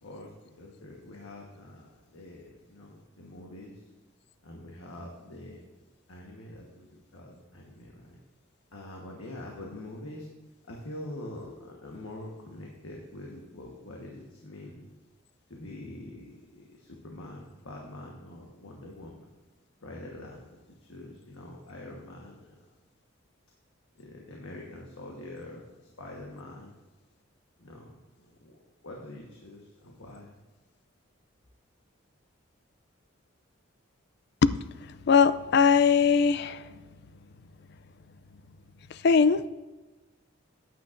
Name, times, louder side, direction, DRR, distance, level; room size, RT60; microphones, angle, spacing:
voice 1, 0.0-3.9 4.4-5.6 6.1-8.2 8.7-10.3 10.7-14.9 15.5-19.3 19.8-22.5 23.9-26.8 27.6-28.6 28.8-30.4, left 1 dB, 90° left, -1 dB, 1.3 m, -45 dB
voice 2, 35.1-36.6 38.9-39.5, left 5 dB, 50° left, 14 dB, 0.3 m, -21 dB
14.5 x 9.2 x 2.6 m, 1.2 s
head